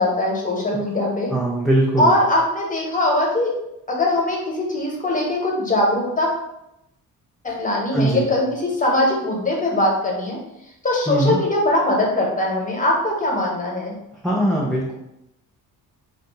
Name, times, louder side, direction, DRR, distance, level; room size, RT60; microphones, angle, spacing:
voice 1, 0.0-1.3 2.0-3.5 3.9-6.3 7.4-10.4 10.8-14.0, left 1 dB, 15° left, -1 dB, 0.9 m, -21 dB
voice 2, 1.3-2.1 7.9-8.2 11.1-11.4 14.2-14.9, right 1 dB, ahead, -5 dB, 0.4 m, -20 dB
2.5 x 2.4 x 3.8 m, 0.84 s
figure-of-eight pair, 40°, 49 cm